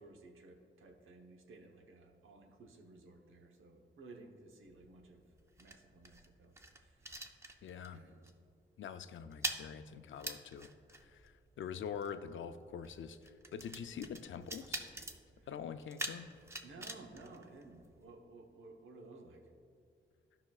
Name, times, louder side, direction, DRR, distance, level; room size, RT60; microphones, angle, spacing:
voice 1, 0.0-5.2 5.6-7.1 7.4-7.5 7.9-8.2 15.3-15.5 16.6-19.4, right 2 dB, 80° right, 2 dB, 1.0 m, -56 dB
sound 1, 4.6-8.0 8.2-8.5 8.8-18.2, right 2 dB, 15° right, 0.5 m, -46 dB
voice 2, 7.6-8.0 8.8-10.7 11.0-15.0 15.5-16.3, left 7 dB, 70° left, 10 dB, 0.4 m, -45 dB
16.0 x 5.7 x 2.4 m, 2.3 s
wide cardioid pair, 165°, 21 cm